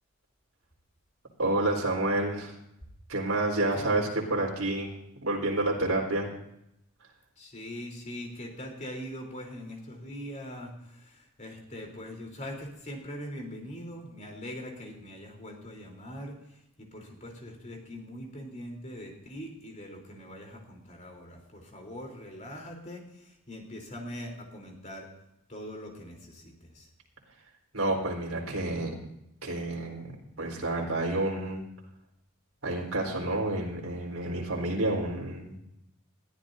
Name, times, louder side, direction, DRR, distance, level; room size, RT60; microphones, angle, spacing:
voice 1, 1.4-2.5 3.1-4.9 5.2-6.3 27.7-28.9 29.4-30.1 30.4-31.6 32.6-35.6, right 2 dB, 75° right, -1 dB, 4.0 m, -29 dB
voice 2, 7.4-25.1 25.5-26.9, equal, 35° left, 1 dB, 3.5 m, -42 dB
21.5 x 13.5 x 2.7 m, 0.82 s
head